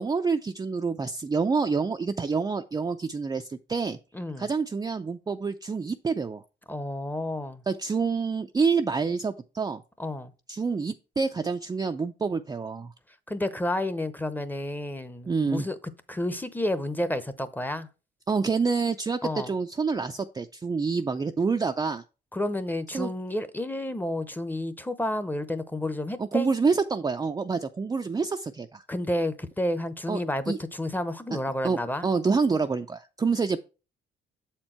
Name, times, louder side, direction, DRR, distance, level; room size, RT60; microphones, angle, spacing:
voice 1, 0.0-4.0 4.4-6.4 7.7-9.8 10.5-12.9 15.3-15.7 18.3-22.0 22.9-23.1 26.2-28.8 30.1-30.2 30.5-30.6 31.6-33.6, right 4 dB, 20° right, 0.4 m, -27 dB
voice 2, 4.1-4.5 6.7-7.6 10.0-10.3 13.3-15.8 16.1-17.9 19.2-19.5 22.3-26.5 28.9-32.1, left 1 dB, 10° left, 0.7 m, -30 dB
7.3 x 4.5 x 4.3 m
cardioid pair, 90°, 20 cm